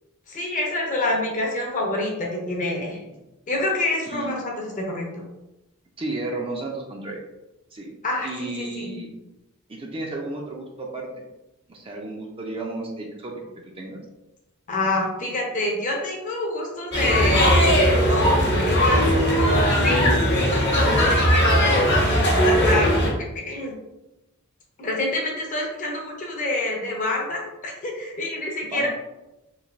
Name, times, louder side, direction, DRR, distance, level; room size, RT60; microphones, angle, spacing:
voice 1, 0.3-3.0 3.5-5.3 8.0-8.9 14.7-21.9 22.6-22.9 23.5-23.8 24.8-28.9, left 1 dB, 35° left, 0 dB, 0.6 m, -27 dB
voice 2, 6.0-7.2 7.7-7.9 8.2-9.1 9.7-11.1 11.7-13.4 13.8-14.0 18.6-19.4 28.6-28.9, right 2 dB, 25° right, 0 dB, 0.4 m, -32 dB
sound 1, 16.9-23.1, equal, 55° left, 0.9 m, -19 dB
3.1 x 2.6 x 2.5 m, 0.99 s
head